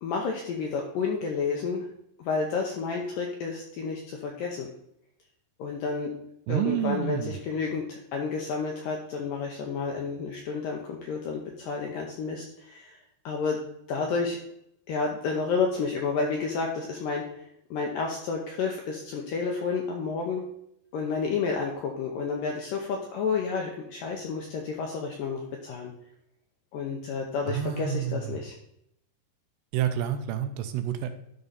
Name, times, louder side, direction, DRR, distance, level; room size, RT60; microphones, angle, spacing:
voice 1, 0.0-1.9 2.2-4.7 5.6-6.1 6.5-13.0 13.2-13.6 13.9-14.4 14.9-17.2 17.7-20.4 20.9-25.9 26.7-28.5, left 5 dB, 75° left, 1 dB, 2.0 m, -30 dB
voice 2, 6.5-7.3 27.5-28.4 29.7-31.1, right 10 dB, 80° right, 8 dB, 2.8 m, -29 dB
12.5 x 5.1 x 4.1 m, 0.76 s
omnidirectional pair, 5.1 m